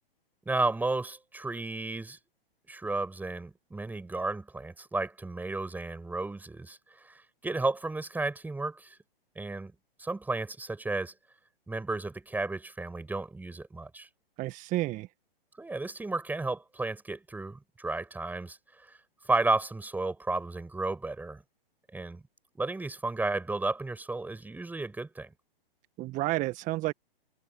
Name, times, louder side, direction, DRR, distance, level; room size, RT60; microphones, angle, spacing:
voice 1, 0.4-2.2 2.7-9.0 9.3-9.7 10.0-11.1 11.7-14.1 15.6-18.9 19.2-21.4 21.9-22.2 22.6-25.3, right 2 dB, 5° right, 6.6 m, -33 dB
voice 2, 14.4-15.1 26.0-26.9, right 18 dB, 25° right, 1.5 m, -30 dB
hypercardioid pair, 125°, 30 cm